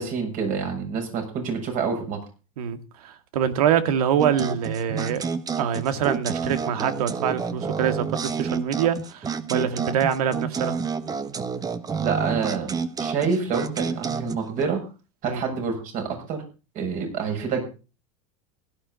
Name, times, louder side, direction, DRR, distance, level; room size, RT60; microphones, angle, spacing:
voice 1, 0.0-2.2 11.9-14.8 15.2-16.4 16.7-17.6, right 5 dB, 45° right, 7.2 m, -27 dB
voice 2, 2.6-5.3 5.6-10.8 15.2-15.4, right 9 dB, 80° right, 2.1 m, -25 dB
sound 1, 4.2-14.6, right 5 dB, 20° right, 1.2 m, -29 dB
16.5 x 13.0 x 4.1 m
supercardioid pair, 125°, 19 cm